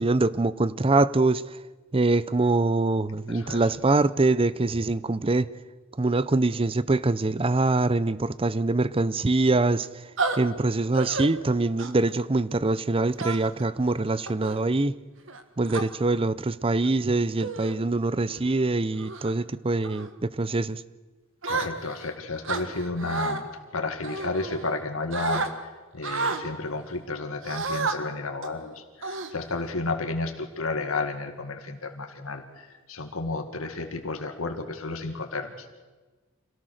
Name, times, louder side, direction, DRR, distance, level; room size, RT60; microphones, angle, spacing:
voice 1, 0.0-1.6 1.9-5.5 6.0-9.9 10.4-14.9 15.6-20.8, right 2 dB, 25° right, 0.6 m, -24 dB
voice 2, 3.3-3.6 21.5-23.4 23.7-25.5 25.9-35.7, left 3 dB, 90° left, 2.0 m, -32 dB
sound 1, 10.2-10.4 10.9-11.3 11.8-12.1 13.2-13.6 14.3-14.6 15.3-15.9 16.7-16.9 17.4-17.8 18.2-18.5 19.0-19.3 19.8-20.1 21.4-22.1 22.4-23.4 24.0-24.8 25.1-25.5 26.0-26.4 27.4-28.0 28.4-28.6 29.0-29.7, right 4 dB, 65° right, 1.6 m, -31 dB
26.5 x 17.5 x 6.5 m
head